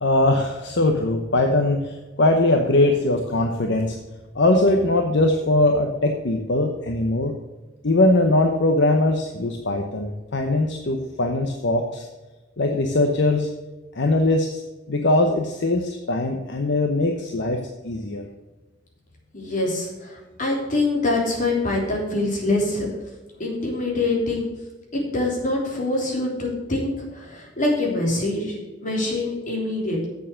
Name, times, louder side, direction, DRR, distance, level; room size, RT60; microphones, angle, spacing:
voice 1, 0.0-4.0 4.3-7.3 7.8-12.1 12.6-13.5 13.9-14.6 14.9-18.2, left 2 dB, 65° left, 4 dB, 0.9 m, -21 dB
voice 2, 19.3-22.9 23.4-24.5 24.9-30.1, left 2 dB, 45° left, -2 dB, 3.4 m, -24 dB
8.1 x 6.9 x 6.3 m, 1.2 s
head